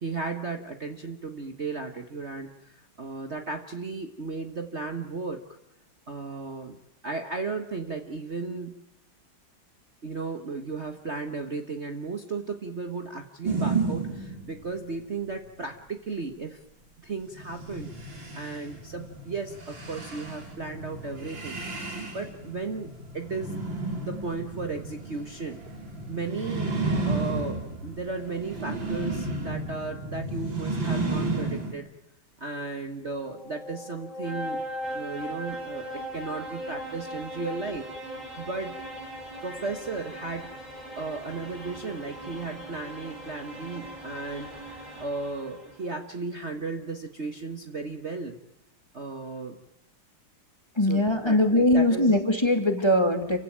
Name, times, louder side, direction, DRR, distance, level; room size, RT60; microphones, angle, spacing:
voice 1, 0.0-5.4 6.1-6.8 7.0-8.7 10.0-16.6 17.0-23.6 24.0-25.6 26.1-26.7 27.0-31.9 32.4-34.7 34.9-37.8 38.4-38.8 39.4-40.5 41.0-44.5 45.0-48.4 48.9-49.6 50.9-52.1, right 4 dB, 35° right, 6 dB, 1.6 m, -35 dB
sound 1, 13.4-14.7 17.3-31.7, right 3 dB, 70° right, 4.8 m, -32 dB
sound 2, 33.1-45.9, equal, 20° right, 6.1 m, -39 dB
voice 2, 50.7-53.4, left 1 dB, 15° left, 5 dB, 2.8 m, -21 dB
29.0 x 16.5 x 8.7 m, 0.86 s
omnidirectional pair, 2.1 m